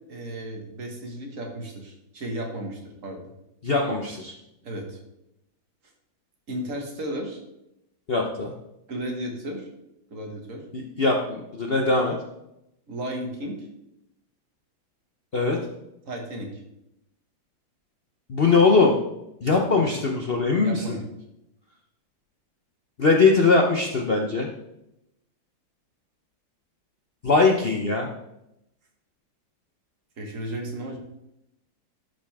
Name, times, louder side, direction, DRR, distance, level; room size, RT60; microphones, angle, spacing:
voice 1, 0.1-3.2 4.6-5.0 6.5-7.4 8.9-9.7 10.1-10.6 12.9-13.7 16.1-16.6 19.9-20.0 20.6-21.0 30.2-31.0, right 1 dB, 45° right, 1 dB, 1.7 m, -34 dB
voice 2, 3.6-4.3 8.1-8.5 10.7-12.2 15.3-15.6 18.3-19.0 19.4-21.0 23.0-24.5 27.2-28.1, left 4 dB, 65° left, 1 dB, 0.5 m, -21 dB
12.0 x 5.2 x 3.5 m, 0.85 s
omnidirectional pair, 2.1 m